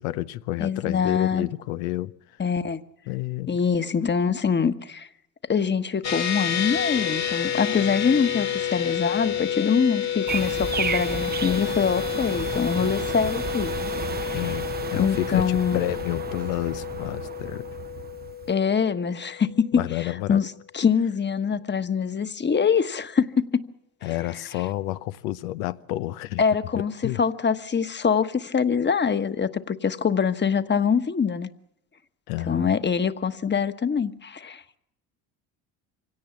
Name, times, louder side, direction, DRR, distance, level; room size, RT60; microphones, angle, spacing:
voice 1, 0.0-2.4 3.1-3.6 14.3-14.6 14.9-17.7 19.7-20.4 24.0-26.4 26.7-27.2 32.3-32.8, left 16 dB, 80° left, 0.9 m, -30 dB
voice 2, 0.6-1.5 2.4-2.8 3.5-5.1 5.5-13.7 14.2-14.5 15.0-15.8 18.5-23.6 26.4-26.9 27.2-31.5 32.5-34.8, left 6 dB, 25° left, 1.3 m, -24 dB
sound 1, 6.0-19.6, left 9 dB, 45° left, 1.9 m, -30 dB
sound 2, 10.3-18.5, right 6 dB, 25° right, 0.7 m, -33 dB
24.5 x 17.5 x 7.3 m
supercardioid pair, 75°, 40 cm